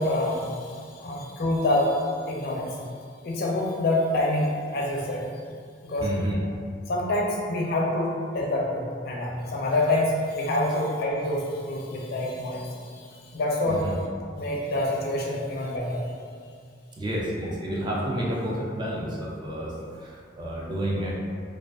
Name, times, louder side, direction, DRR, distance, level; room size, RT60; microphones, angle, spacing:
voice 1, 0.0-2.8 3.2-5.2 5.8-6.1 6.9-13.1 13.3-13.9 14.4-16.0, left 1 dB, 55° left, -2 dB, 0.4 m, -26 dB
voice 2, 6.0-6.4 13.7-14.0 17.0-21.1, right 1 dB, 25° right, -4 dB, 0.3 m, -30 dB
2.4 x 2.3 x 2.2 m, 2.2 s
head